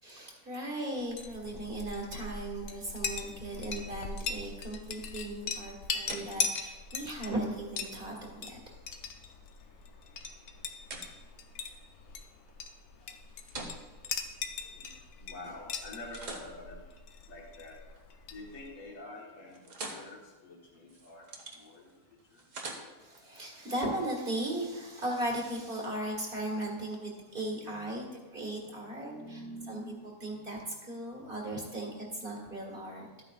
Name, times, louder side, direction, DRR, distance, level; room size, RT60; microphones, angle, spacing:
voice 1, 0.0-8.6 23.0-28.1 28.3-33.1, right 1 dB, 40° right, -1 dB, 2.0 m, -37 dB
Chink clink, 1.0-18.8, left 5 dB, 90° left, 1.3 m, -40 dB
sound 1, 5.4-15.4 15.8-18.1 18.5-18.9 19.2-23.5, right 3 dB, 60° right, 1.6 m, -49 dB
voice 2, 15.2-16.8 17.3-17.8 18.3-21.3 21.5-21.9 22.3-22.4 27.3-27.4 27.7-30.7, left 1 dB, 60° left, -2 dB, 2.0 m, -48 dB
13.0 x 9.0 x 2.5 m, 1.2 s
omnidirectional pair, 1.5 m